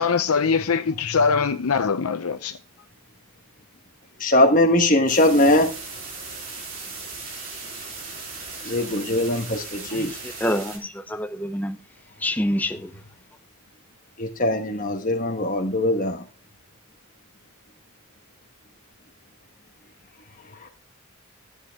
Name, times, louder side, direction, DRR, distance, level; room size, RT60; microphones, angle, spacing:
voice 1, 0.0-2.5, left 5 dB, 85° left, 0.7 m, -22 dB
voice 2, 4.2-5.7 8.6-10.1 14.2-16.2 20.6-20.7, left 1 dB, 40° left, 1.2 m, -21 dB
sound 1, 5.1-10.8, right 4 dB, 40° right, 3.6 m, -37 dB
voice 3, 10.4-11.8 12.2-12.9, left 1 dB, 10° left, 0.6 m, -26 dB
13.0 x 8.2 x 3.5 m
head